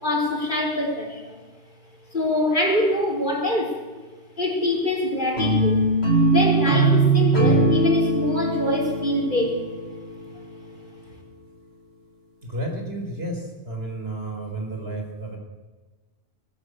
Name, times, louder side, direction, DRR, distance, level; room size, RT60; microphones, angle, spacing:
voice 1, 0.0-1.5 2.1-3.9 4.4-9.6, left 1 dB, 45° left, 0 dB, 4.1 m, -24 dB
sound 1, 5.4-10.5, right 2 dB, 65° left, 4.0 m, -21 dB
voice 2, 12.4-15.4, right 1 dB, 60° right, 2 dB, 4.5 m, -31 dB
20.0 x 16.5 x 8.1 m, 1.3 s
omnidirectional pair, 1.1 m